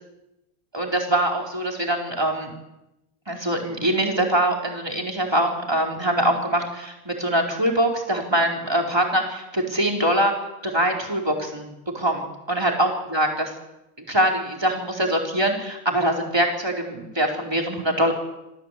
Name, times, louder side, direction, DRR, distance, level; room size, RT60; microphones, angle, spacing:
voice 1, 0.7-2.5 3.3-10.3 10.6-11.7 11.9-13.3 14.0-18.1, right 1 dB, 10° right, 1 dB, 4.6 m, -23 dB
27.5 x 17.5 x 8.6 m, 0.91 s
omnidirectional pair, 2.3 m